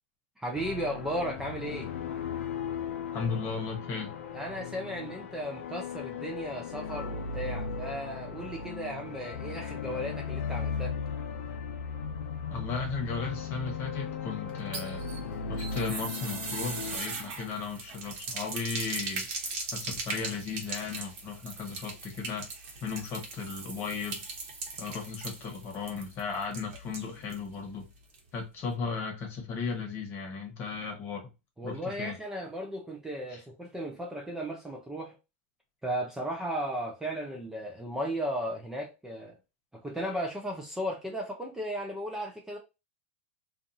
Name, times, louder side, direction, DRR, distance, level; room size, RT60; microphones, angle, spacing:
voice 1, 0.4-1.9 4.3-10.9 31.6-35.2 35.8-39.4 39.7-42.6, equal, 5° right, 0.6 m, -35 dB
sound 1, 0.5-17.0, left 6 dB, 75° left, 0.5 m, -37 dB
voice 2, 3.1-4.1 12.5-15.0 15.5-19.3 19.7-22.4 22.8-24.2 24.8-27.9 28.3-31.2 31.6-32.1 33.3-33.4, left 5 dB, 35° left, 1.2 m, -35 dB
sound 2, 14.5-27.5 27.7-27.8 28.1-28.2, right 4 dB, 55° right, 1.2 m, -39 dB
2.5 x 2.5 x 2.7 m
hypercardioid pair, 125°, 7 cm